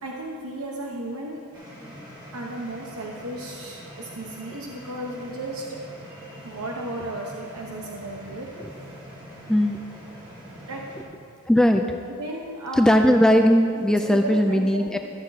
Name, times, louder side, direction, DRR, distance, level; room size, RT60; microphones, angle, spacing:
voice 1, 0.0-1.4 2.3-5.8 6.1-8.5 10.7-10.9 12.1-12.9 14.0-15.0, right 2 dB, 75° right, -2 dB, 1.0 m, -34 dB
sound 1, 1.5-11.0, equal, 20° right, 2.1 m, -44 dB
voice 2, 9.5-9.8 11.5-12.0 12.8-15.0, equal, 5° left, 4 dB, 0.3 m, -18 dB
13.5 x 7.6 x 4.0 m, 2.6 s
head